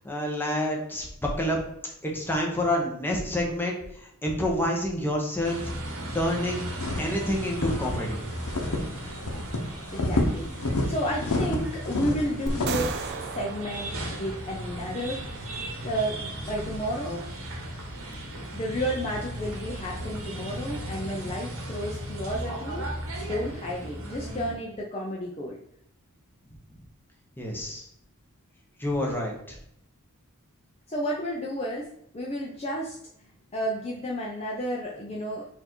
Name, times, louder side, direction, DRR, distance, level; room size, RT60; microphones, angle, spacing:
voice 1, 0.0-1.6 2.0-5.7 6.1-6.6 7.0-8.2 27.4-27.8 28.8-29.6, left 1 dB, 10° left, -1 dB, 0.9 m, -28 dB
sound 1, 5.4-24.5, right 1 dB, 70° right, 1.1 m, -36 dB
sound 2, 6.8-7.2 7.6-8.0 8.5-9.0 9.2-9.6 9.9-10.9 11.2-13.0, left 2 dB, 90° left, 0.8 m, -27 dB
voice 2, 9.9-13.1 13.3-15.3 15.8-17.2 18.5-22.9 23.2-25.6 30.9-31.9 32.1-35.5, equal, 30° left, -2 dB, 0.5 m, -32 dB
sound 3, 12.5-14.8, right 5 dB, 50° right, 0.3 m, -36 dB
4.3 x 2.6 x 4.4 m, 0.73 s
head